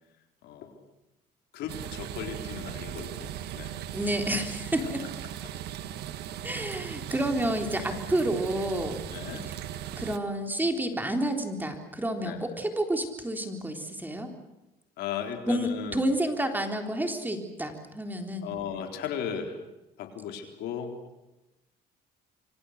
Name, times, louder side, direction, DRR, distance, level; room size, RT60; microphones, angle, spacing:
voice 1, 0.4-0.8 1.5-3.8 4.8-4.9 6.8-6.9 9.1-9.5 12.2-12.4 15.0-16.1 18.4-19.6 20.0-20.9, left 8 dB, 80° left, 4 dB, 4.1 m, -36 dB
sound 1, 1.7-10.2, right 11 dB, 75° right, 1.6 m, -38 dB
voice 2, 3.9-5.0 6.4-9.0 10.0-14.3 15.5-18.5, right 1 dB, 10° right, 4 dB, 3.7 m, -29 dB
27.0 x 25.0 x 6.6 m, 0.98 s
cardioid pair, 110°, 17 cm